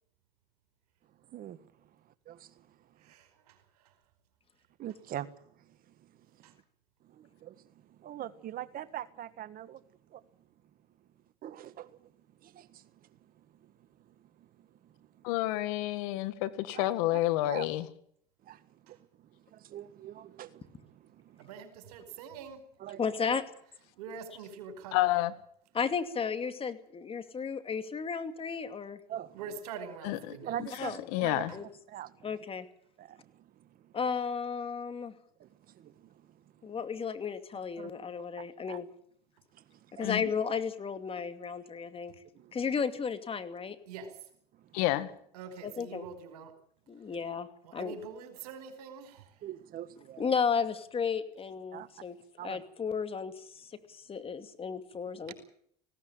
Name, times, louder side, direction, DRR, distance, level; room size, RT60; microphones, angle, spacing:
voice 1, 2.3-2.7 4.8-5.3 7.0-7.7 8.0-9.8 10.1-10.2 11.4-12.0 12.4-12.9 13.6-13.7 14.4-14.9 16.7-16.9 17.5-17.7 18.4-19.0 19.5-21.6 22.8-23.0 29.1-29.6 30.4-31.4 31.9-32.3 33.0-33.9 35.4-36.1 37.8-37.9 38.4-38.8 39.5-40.1 42.3-42.5 49.4-50.3 51.7-51.9 52.4-52.6, right 11 dB, 50° right, 1.5 m, -43 dB
voice 2, 3.0-3.6 6.4-6.5 21.4-22.6 24.0-25.1 29.3-30.9 43.9-44.2 45.3-46.5 47.6-49.2 55.3-55.4, right 6 dB, 85° right, 4.9 m, -44 dB
voice 3, 15.2-17.9 24.9-25.3 30.0-30.7 31.1-31.5 40.0-40.2 44.7-45.1, left 16 dB, 75° left, 1.9 m, -29 dB
voice 4, 23.0-23.4 25.7-29.0 30.8-31.0 31.5-31.7 32.2-32.7 33.9-35.1 36.6-38.9 40.0-42.1 42.5-43.8 44.9-45.1 45.6-46.1 46.9-47.9 50.2-52.2 52.4-55.3, left 6 dB, 30° left, 2.5 m, -34 dB
19.0 x 17.0 x 8.9 m
supercardioid pair, 90°, 19 cm